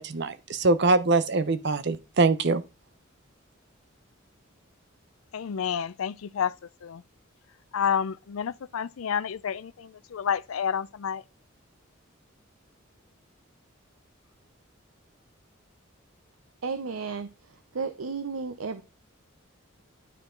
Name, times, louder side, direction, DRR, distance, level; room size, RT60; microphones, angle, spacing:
voice 1, 0.0-2.6, right 3 dB, 55° right, 0.8 m, -23 dB
voice 2, 5.3-6.5 6.8-7.0 7.7-11.2, left 7 dB, 90° left, 0.4 m, -29 dB
voice 3, 16.6-17.3 17.7-18.8, right 4 dB, 90° right, 0.7 m, -32 dB
12.0 x 4.5 x 3.8 m
head